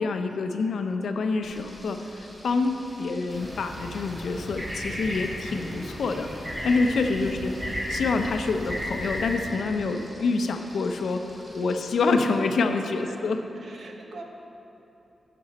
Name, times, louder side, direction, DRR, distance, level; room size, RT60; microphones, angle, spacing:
voice 1, 0.0-7.6 7.9-11.3 11.5-13.4, left 3 dB, 80° left, 6 dB, 0.5 m, -27 dB
Frying (food), 1.4-12.0, left 1 dB, 10° left, 2.0 m, -49 dB
sound 1, 3.3-9.4, equal, 30° right, 2.0 m, -34 dB
voice 2, 7.3-7.7 11.2-11.6 13.1-13.2 13.5-14.2, right 3 dB, 65° right, 2 dB, 0.9 m, -46 dB
9.8 x 6.8 x 4.2 m, 2.9 s
wide cardioid pair, 130°, 0 cm